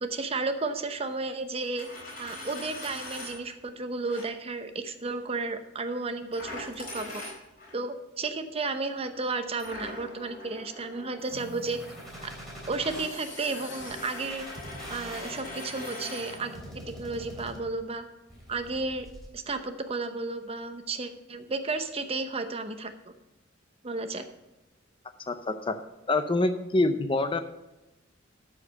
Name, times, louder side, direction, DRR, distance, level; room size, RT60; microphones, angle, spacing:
voice 1, 0.0-1.9 2.2-7.2 7.7-11.8 12.7-14.5 14.9-18.0 18.5-19.1 19.3-23.1 23.8-24.3, right 3 dB, 30° right, 8 dB, 0.8 m, -33 dB
Coin (dropping), 1.6-3.4 4.0-4.2 6.3-7.7 9.6-16.4, left 1 dB, 45° left, 4.5 m, -42 dB
sound 1, 11.2-15.5, left 4 dB, 60° left, 2.5 m, -49 dB
sound 2, 11.3-13.1 13.8-17.8 18.3-19.3, equal, ahead, 3.1 m, -44 dB
voice 2, 25.3-25.8 26.1-27.4, left 2 dB, 25° left, 9 dB, 0.6 m, -26 dB
13.0 x 4.9 x 6.5 m, 0.99 s
head